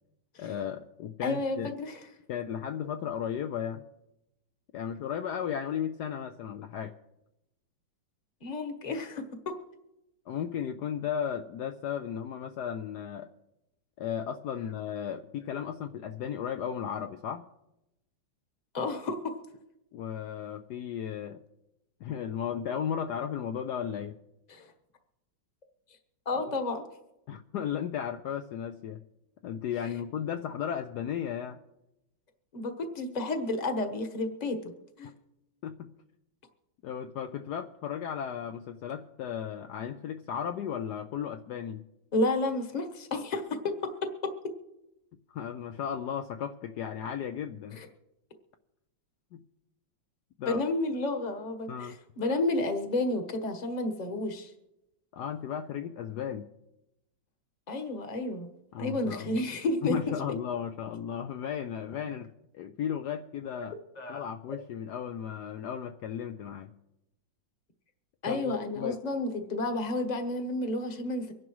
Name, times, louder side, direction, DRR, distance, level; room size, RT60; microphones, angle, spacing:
voice 1, 0.4-1.7 2.3-3.8 4.7-6.9 10.3-13.3 14.0-17.4 19.9-21.4 22.0-24.2 26.4-26.5 27.3-29.0 29.4-31.6 35.6-35.9 36.8-41.8 45.3-47.8 49.3-49.4 50.4-50.6 51.7-52.0 55.1-56.5 58.7-59.4 59.8-62.3 62.5-63.7 64.1-66.7 68.3-69.0, left 8 dB, 70° left, 6 dB, 1.1 m, -35 dB
voice 2, 1.2-2.0 8.4-9.6 18.7-19.2 24.5-24.7 26.2-26.8 32.5-34.7 35.0-35.1 42.1-43.7 47.8-47.9 50.5-54.5 57.7-58.5 58.8-60.1 63.6-63.7 64.0-64.2 68.2-71.3, left 2 dB, 25° left, 6 dB, 1.1 m, -31 dB
24.5 x 11.0 x 3.1 m, 0.91 s
omnidirectional pair, 2.0 m